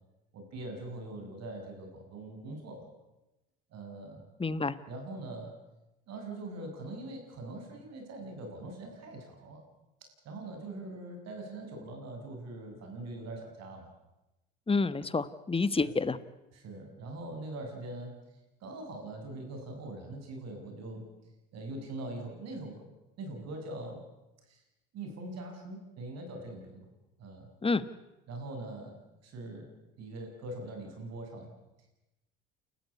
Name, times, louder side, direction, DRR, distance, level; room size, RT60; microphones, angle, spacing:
voice 1, 0.3-2.9 3.7-4.2 4.9-5.6 6.1-9.6 10.0-13.9 15.8-15.9 16.5-18.2 18.6-21.1 21.5-22.9 23.2-24.0 24.5-24.6 24.9-26.9 27.2-27.5 28.3-29.0 29.2-29.7 30.0-31.5, right 2 dB, 60° right, 3 dB, 7.3 m, -42 dB
voice 2, 4.4-4.8 14.7-16.2 27.6-27.8, left 3 dB, 20° left, 15 dB, 1.4 m, -28 dB
30.0 x 14.0 x 8.3 m, 0.98 s
hypercardioid pair, 65°, 30 cm